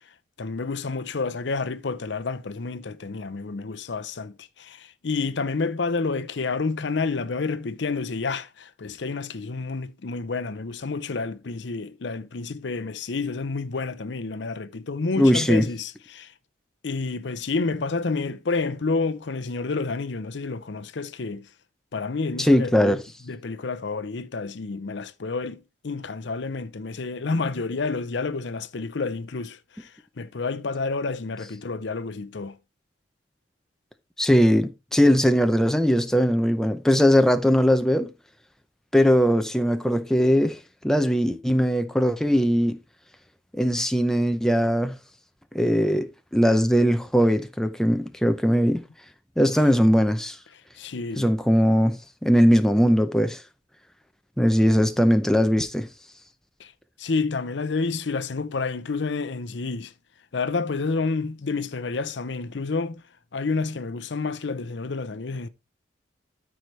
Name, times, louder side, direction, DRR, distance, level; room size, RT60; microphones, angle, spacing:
voice 1, 0.4-16.3 16.8-21.5 21.9-23.0 23.3-29.9 30.2-32.6 49.4-49.5 50.8-51.3 56.6-56.7 57.0-59.9 60.3-63.0 63.3-65.5, left 4 dB, 70° left, 0.6 m, -29 dB
voice 2, 15.2-15.7 22.4-23.0 34.2-38.1 38.9-40.6 40.8-42.8 43.5-45.0 45.5-48.8 49.4-50.4 51.2-53.4 54.4-55.9, equal, 5° left, 0.5 m, -20 dB
13.0 x 4.8 x 3.2 m
head